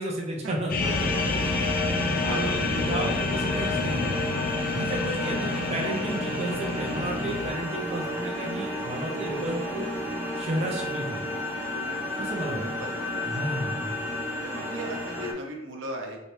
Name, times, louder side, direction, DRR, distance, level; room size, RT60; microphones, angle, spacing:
voice 1, 0.0-1.4 2.2-4.2 4.7-9.9 10.3-11.4 12.2-12.7 13.2-14.0, right 1 dB, 35° right, -1 dB, 0.5 m, -32 dB
sound 1, 0.7-7.5, left 3 dB, 45° left, 0.4 m, -29 dB
sound 2, 0.8-15.3, left 1 dB, 15° right, 0.9 m, -32 dB
voice 2, 2.1-2.7 7.9-8.1 12.6-12.9 14.4-16.2, right 1 dB, 85° right, 1 dB, 0.8 m, -36 dB
3.9 x 3.2 x 3.0 m, 1.0 s
head